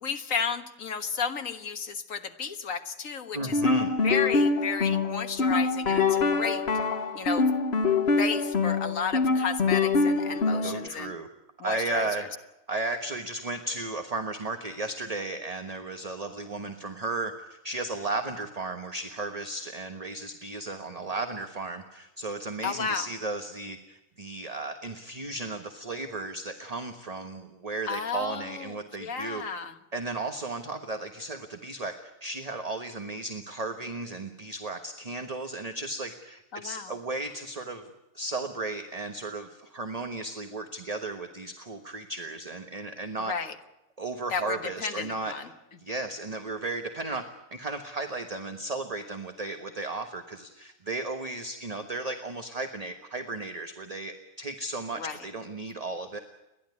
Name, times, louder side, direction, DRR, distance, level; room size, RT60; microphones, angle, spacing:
voice 1, 0.0-3.6 4.0-6.6 7.1-7.5 8.2-11.1 11.6-12.1 22.6-23.1 27.9-29.7 36.5-37.0 43.3-43.6 44.3-45.4 55.0-55.2, left 6 dB, 65° left, 8 dB, 1.8 m, -33 dB
voice 2, 3.3-3.9 10.6-11.3 11.6-12.3 12.7-29.4 29.9-37.9 38.1-43.3 44.0-45.3 45.8-47.2 47.5-56.2, right 2 dB, 25° right, 6 dB, 1.3 m, -35 dB
sound 1, 3.4-10.9, left 4 dB, 45° left, 1.4 m, -25 dB
30.0 x 11.5 x 9.7 m, 0.96 s
omnidirectional pair, 1.5 m